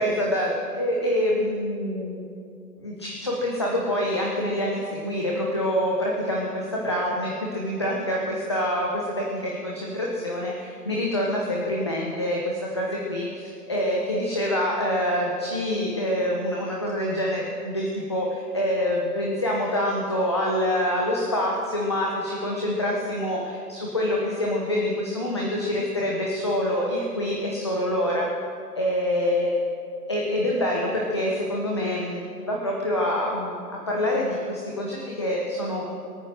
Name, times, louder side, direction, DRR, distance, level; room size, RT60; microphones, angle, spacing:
voice 1, 0.0-2.3 2.8-28.3 28.8-29.5 30.1-35.9, left 1 dB, 15° left, -3 dB, 0.8 m, -26 dB
23.0 x 8.9 x 6.2 m, 2.4 s
hypercardioid pair, 165°, 49 cm